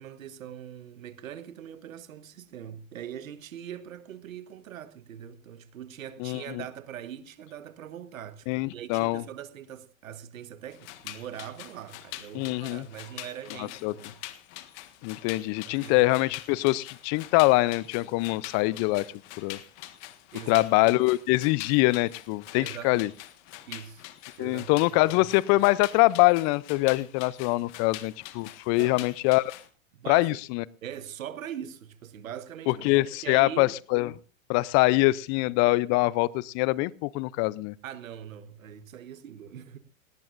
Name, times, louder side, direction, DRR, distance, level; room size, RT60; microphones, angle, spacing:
voice 1, 0.0-14.2 15.7-16.0 20.3-21.0 22.6-23.1 23.7-24.1 24.4-25.0 28.7-29.0 29.9-30.4 30.8-33.8 37.8-39.8, right 9 dB, 80° right, 1.4 m, -42 dB
voice 2, 6.2-6.6 8.5-9.2 12.3-12.9 13.6-13.9 15.0-19.6 20.5-23.1 24.4-29.5 30.1-30.6 32.7-34.1 34.5-37.7, left 21 dB, 40° left, 0.6 m, -24 dB
sound 1, 10.7-29.7, left 15 dB, 60° left, 1.7 m, -44 dB
19.0 x 18.0 x 2.6 m
hypercardioid pair, 100°, 40 cm